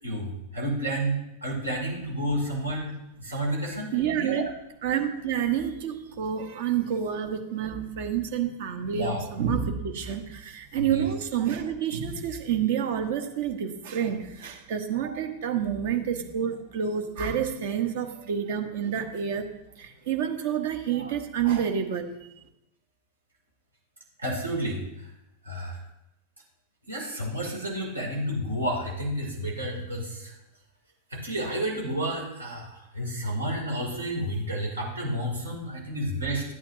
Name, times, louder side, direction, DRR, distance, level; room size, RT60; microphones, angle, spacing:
voice 1, 0.0-4.5 8.9-9.3 10.7-11.1 24.2-24.8 25.4-25.8 26.9-30.3 31.1-36.4, right 1 dB, 75° right, 0 dB, 2.6 m, -31 dB
voice 2, 3.9-4.5 4.8-19.5 19.8-22.1, right 8 dB, 55° right, 6 dB, 1.1 m, -28 dB
12.5 x 8.7 x 2.7 m, 0.88 s
figure-of-eight pair, 90°, 0 cm